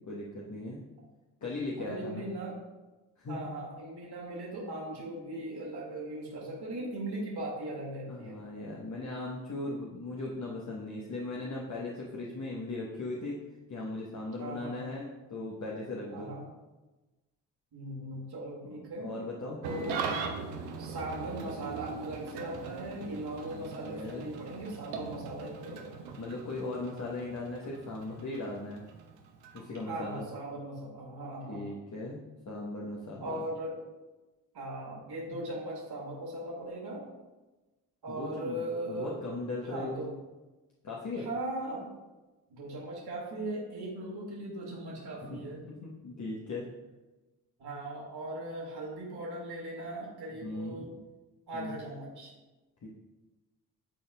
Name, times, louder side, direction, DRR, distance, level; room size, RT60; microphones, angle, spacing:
voice 1, 0.1-0.8 1.4-2.3 3.2-3.4 8.1-13.4 13.7-16.3 18.6-20.0 23.5-24.3 26.2-28.8 29.5-30.2 31.5-32.2 32.5-33.4 38.1-40.1 40.8-41.3 45.3-45.4 45.8-46.7 50.4-50.9 51.5-51.8 52.8-52.9, left 2 dB, 35° left, -4 dB, 1.1 m, -38 dB
voice 2, 1.8-2.6 3.3-8.4 14.4-14.8 16.1-16.4 17.7-19.1 19.6-20.1 20.8-25.9 29.9-31.7 33.2-33.7 34.5-37.0 38.0-39.2 39.7-40.1 41.2-41.9 42.5-45.6 47.6-50.9 51.5-52.3, right 1 dB, 50° right, -3 dB, 2.0 m, -39 dB
Engine starting / Idling, 19.6-30.2, right 5 dB, 85° right, 0.7 m, -41 dB
10.0 x 4.1 x 2.3 m, 1.1 s
hypercardioid pair, 45°, 49 cm